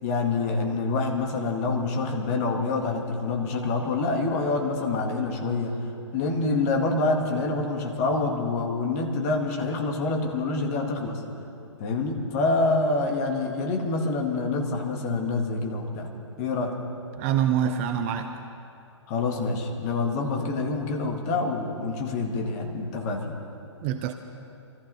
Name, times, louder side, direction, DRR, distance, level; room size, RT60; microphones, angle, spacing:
voice 1, 0.0-5.7 6.1-11.2 11.8-16.1 16.4-16.8 19.1-23.3, left 3 dB, 30° left, 2 dB, 2.0 m, -26 dB
voice 2, 17.2-18.4 23.8-24.1, right 9 dB, 25° right, 8 dB, 0.6 m, -25 dB
24.0 x 14.5 x 4.1 m, 2.8 s
figure-of-eight pair, 120°, 16 cm